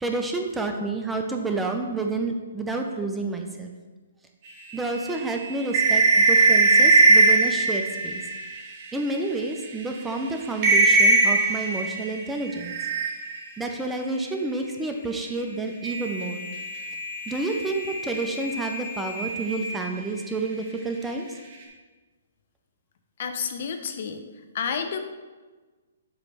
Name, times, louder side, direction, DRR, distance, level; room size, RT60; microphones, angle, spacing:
voice 1, 0.0-3.7 4.7-8.2 8.9-12.7 13.6-16.5 17.3-21.4, right 3 dB, 5° right, 3 dB, 0.5 m, -29 dB
sound 1, 4.7-9.1 9.6-9.7 10.1-10.2 10.6-13.5 15.8-20.2, right 2 dB, 35° right, 1.5 m, -22 dB
voice 2, 23.2-24.2 24.5-25.0, left 6 dB, 55° left, 7 dB, 0.7 m, -30 dB
7.6 x 3.2 x 5.4 m, 1.3 s
hypercardioid pair, 150°, 0 cm